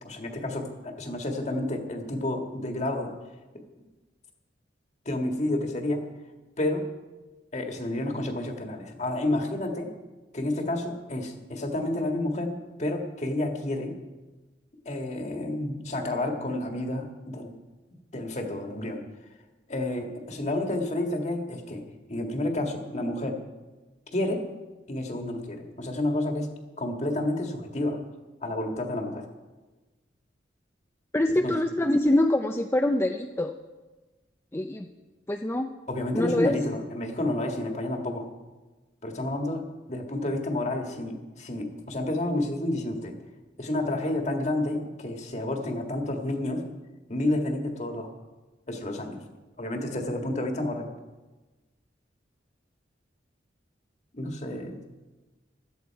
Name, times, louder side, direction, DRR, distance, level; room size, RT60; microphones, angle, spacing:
voice 1, 0.0-3.1 5.0-6.0 6.6-6.9 7.5-9.9 10.3-13.9 14.8-17.5 18.1-19.0 19.7-21.8 22.1-23.4 24.1-24.4 24.9-28.0 28.4-29.3 31.4-31.5 35.9-38.3 39.0-43.2 43.6-46.7 47.1-48.1 48.7-49.2 49.6-50.9 54.1-54.8, left 1 dB, 40° left, 3 dB, 1.8 m, -30 dB
voice 2, 31.1-33.5 34.5-34.9 35.3-35.7 36.1-36.6, left 1 dB, 15° left, 4 dB, 0.5 m, -24 dB
16.0 x 13.0 x 4.7 m, 1.2 s
head